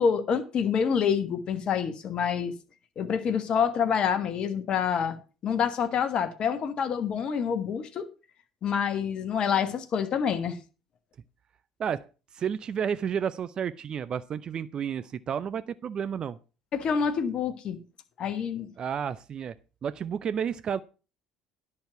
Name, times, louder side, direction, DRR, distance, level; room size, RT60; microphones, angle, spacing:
voice 1, 0.0-2.5 3.0-5.2 5.4-8.1 8.6-10.6 16.7-17.8 18.2-18.7, left 7 dB, 45° left, 1.3 m, -27 dB
voice 2, 12.3-16.4 18.8-19.5 19.8-20.8, right 8 dB, 40° right, 0.5 m, -31 dB
10.5 x 6.5 x 5.8 m
figure-of-eight pair, 60°, 2 cm